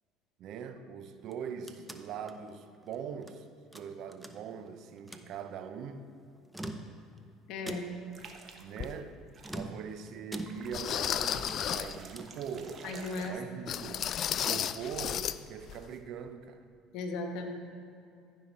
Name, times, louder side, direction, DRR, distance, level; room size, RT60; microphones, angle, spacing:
voice 1, 0.4-3.5 3.7-6.1 8.6-9.1 9.5-12.9 13.3-14.1 14.4-16.6, right 7 dB, 60° right, 0.7 m, -42 dB
sound 1, 1.2-3.4 3.7-4.7 5.0-5.3 6.4-7.2 7.7-8.2 9.4-10.9 11.2-12.4, right 1 dB, 5° right, 0.7 m, -44 dB
voice 2, 7.5-7.9 12.8-13.4 16.9-17.5, left 3 dB, 70° left, 1.4 m, -36 dB
sound 2, 8.1-8.9 9.3-9.6 10.5-13.3, right 4 dB, 40° right, 1.1 m, -49 dB
sound 3, 8.8-8.9 9.6-9.7 10.7-12.0 13.7-15.4 15.7-15.8 16.3-16.4, left 9 dB, 50° left, 0.3 m, -33 dB
14.5 x 5.7 x 4.4 m
supercardioid pair, 85°, 0 cm